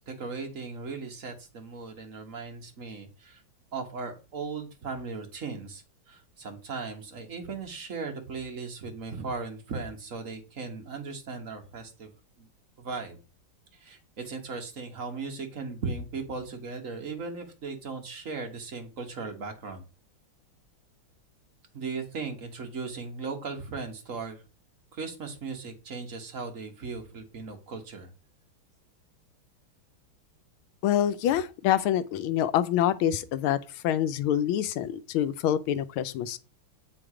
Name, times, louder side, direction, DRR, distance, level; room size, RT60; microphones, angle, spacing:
voice 1, 0.1-3.4 3.7-5.8 6.1-12.1 12.4-12.5 12.8-13.2 13.8-19.8 21.7-24.4 24.9-28.1, right 4 dB, 40° right, 1.6 m, -37 dB
voice 2, 30.8-33.6 33.8-36.4, left 11 dB, 85° left, 1.4 m, -26 dB
7.9 x 4.6 x 4.9 m
omnidirectional pair, 2.3 m